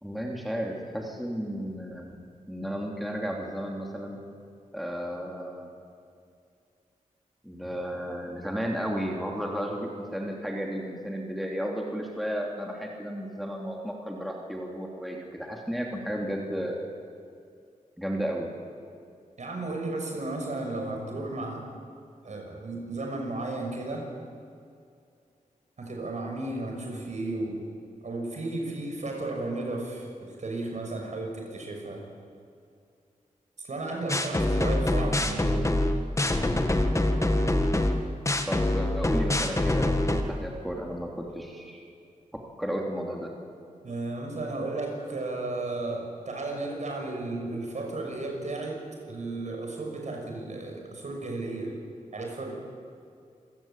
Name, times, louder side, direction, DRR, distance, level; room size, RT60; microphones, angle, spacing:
voice 1, 0.0-2.1 2.5-4.2 4.7-5.7 7.4-16.8 18.0-18.5 38.5-41.9 42.6-43.3, equal, ahead, -1 dB, 3.0 m, -33 dB
voice 2, 19.4-21.7 22.2-24.1 25.8-27.6 28.0-32.0 33.6-35.7 43.8-51.8 52.1-52.6, right 2 dB, 60° right, 1 dB, 6.1 m, -34 dB
sound 1, 34.1-40.2, left 1 dB, 20° left, 1.7 m, -25 dB
27.0 x 16.0 x 8.9 m, 2.3 s
wide cardioid pair, 105°, 14 cm